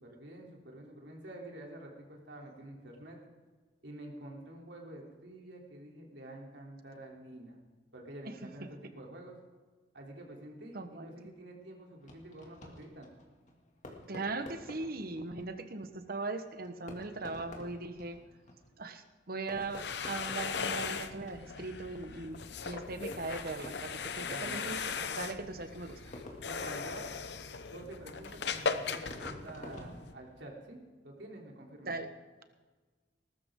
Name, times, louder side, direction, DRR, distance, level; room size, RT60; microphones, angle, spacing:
voice 1, 0.0-3.2 3.8-7.6 7.9-9.4 9.9-13.1 24.1-24.7 26.4-27.1 27.7-30.8 31.0-31.9, right 1 dB, 80° right, -1 dB, 3.3 m, -48 dB
voice 2, 10.7-11.3 14.1-18.2 18.8-26.1 31.8-32.1, right 3 dB, 60° right, 9 dB, 1.2 m, -39 dB
Fireworks, 12.0-30.8, left 1 dB, 45° left, 2.5 m, -52 dB
sound 1, 19.5-30.1, left 5 dB, 70° left, 0.9 m, -39 dB
20.0 x 13.0 x 3.8 m, 1.4 s
head